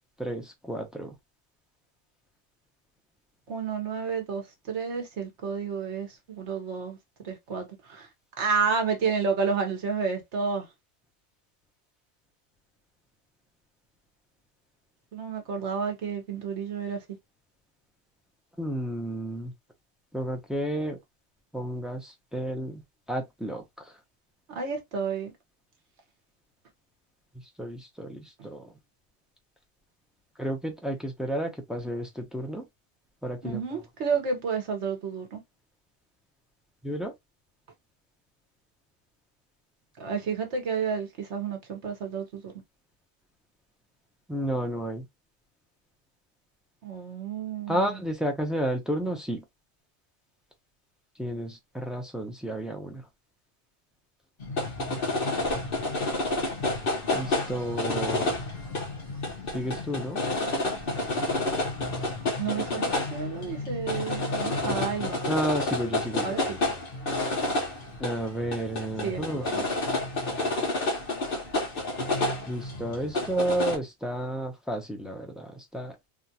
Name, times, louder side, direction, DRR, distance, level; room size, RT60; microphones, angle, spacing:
voice 1, 0.2-1.1 18.6-19.5 20.1-21.0 21.5-22.8 23.1-23.9 27.6-28.7 30.4-32.6 33.2-33.6 36.8-37.1 44.3-45.1 47.7-49.4 51.2-53.0 57.1-58.3 59.5-60.2 65.2-66.4 68.0-69.7 72.5-76.0, right 1 dB, ahead, 0.4 m, -31 dB
voice 2, 3.5-7.0 7.2-8.1 8.4-10.7 15.1-17.0 24.5-25.3 33.4-35.4 40.0-42.5 46.8-48.0 62.4-65.2 66.2-66.4 69.0-69.5, right 5 dB, 65° right, 1.3 m, -30 dB
sound 1, 54.4-73.8, left 2 dB, 50° left, 1.2 m, -30 dB
3.6 x 2.4 x 2.7 m
omnidirectional pair, 1.2 m